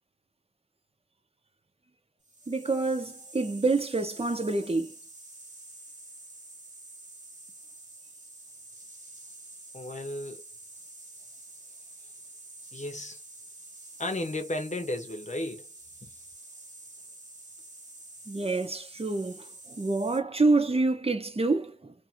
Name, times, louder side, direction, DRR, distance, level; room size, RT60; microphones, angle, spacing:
sound 1, 2.2-20.2, right 2 dB, 85° right, 1.1 m, -48 dB
voice 1, 2.5-4.9 18.3-21.9, right 3 dB, 50° right, 0.7 m, -27 dB
voice 2, 9.7-10.4 12.7-13.2 14.0-15.7 16.0-16.1, left 1 dB, 70° left, 0.8 m, -34 dB
2.6 x 2.6 x 2.7 m
wide cardioid pair, 40°, 13 cm